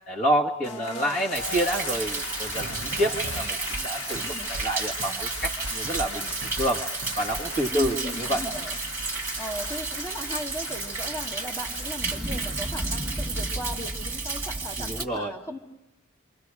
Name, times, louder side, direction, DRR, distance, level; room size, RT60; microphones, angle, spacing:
voice 1, 0.1-4.2 4.5-6.3 6.6-8.4 14.8-15.3, right 1 dB, 35° left, -1 dB, 1.9 m, -28 dB
sound 1, 0.6-13.9, left 4 dB, 80° left, 1.3 m, -39 dB
voice 2, 0.6-1.2 4.2-4.5 7.7-8.8 9.4-15.6, left 1 dB, 15° left, -1 dB, 2.0 m, -37 dB
Thunder, 1.3-15.1, right 3 dB, 10° right, 2.2 m, -32 dB
sound 2, 2.5-3.9 4.1-4.7 5.0-6.1 6.4-6.7 7.0-8.0, right 1 dB, 50° right, 0.8 m, -39 dB
28.5 x 26.5 x 4.9 m, 0.98 s
head